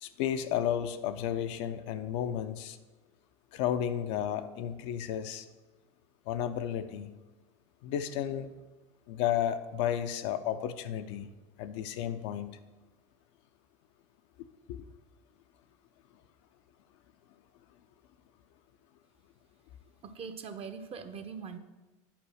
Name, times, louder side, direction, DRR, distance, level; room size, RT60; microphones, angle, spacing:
voice 1, 0.0-2.8 3.5-5.5 6.3-7.1 7.8-8.5 9.1-11.3 11.6-12.5 14.7-14.8, left 10 dB, 65° left, 8 dB, 0.7 m, -32 dB
voice 2, 20.0-21.6, right 6 dB, 35° right, 9 dB, 0.9 m, -42 dB
9.0 x 4.7 x 6.4 m, 1.2 s
hypercardioid pair, 80°, 16 cm